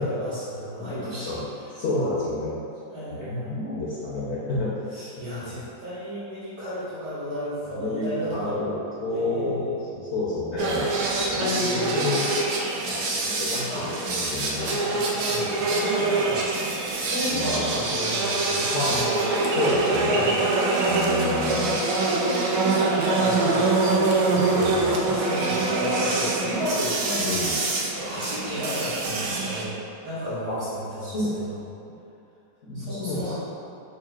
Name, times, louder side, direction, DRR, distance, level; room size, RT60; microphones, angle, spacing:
voice 1, 0.0-1.3 2.9-3.5 4.9-8.6 9.1-9.7 11.5-11.9 13.7-13.9 14.5-16.5 17.0-19.3 19.7-20.5 20.9-21.6 22.0-23.9 24.3-27.4 27.9-31.6 32.7-33.3, equal, 65° right, -14 dB, 1.9 m, -33 dB
voice 2, 0.8-1.5 1.7-2.6 3.1-4.7 7.7-8.7 9.0-13.7 14.1-15.0 15.4-15.6 17.3-17.8 18.7-20.4 20.9-21.7 24.5-25.1 27.2-27.6 30.5-30.6 31.0-31.3 32.6-33.3, left 2 dB, 60° left, -8 dB, 0.8 m, -30 dB
sound 1, 10.6-29.6, right 3 dB, 90° right, 1.2 m, -25 dB
6.3 x 2.3 x 2.3 m, 2.6 s
omnidirectional pair, 1.7 m